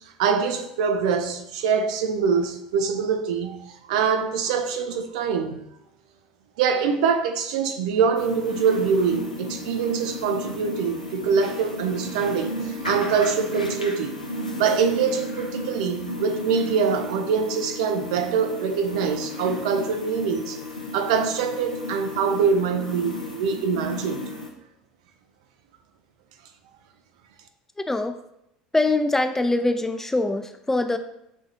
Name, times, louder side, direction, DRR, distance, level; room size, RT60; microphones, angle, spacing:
voice 1, 0.0-5.6 6.6-14.2 14.6-20.6 20.9-24.2, right 6 dB, 65° right, 0.5 m, -24 dB
sound 1, 8.1-24.5, left 1 dB, 90° left, 0.5 m, -34 dB
voice 2, 27.9-28.2 28.7-31.0, left 2 dB, 10° left, 0.4 m, -23 dB
6.1 x 2.4 x 2.7 m
figure-of-eight pair, 65°, 4 cm